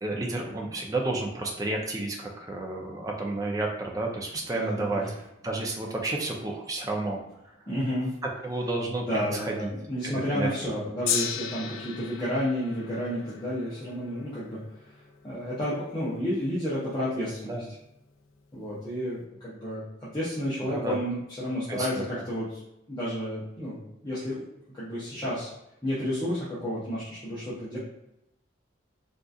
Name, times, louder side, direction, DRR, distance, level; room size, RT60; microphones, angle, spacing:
voice 1, 0.0-5.1 5.4-7.2 8.4-9.7 10.0-10.5 17.5-17.6 20.7-21.0 21.7-22.2, right 2 dB, 15° right, 0 dB, 0.4 m, -31 dB
voice 2, 4.5-5.1 7.7-8.1 9.0-14.6 15.2-17.6 18.5-22.6 22.9-24.5 24.7-25.5 25.8-27.8, equal, 20° left, -10 dB, 0.7 m, -31 dB
Gong, 11.1-17.4 18.2-18.3, left 7 dB, 85° left, 0.4 m, -36 dB
3.7 x 2.5 x 2.3 m, 0.86 s
head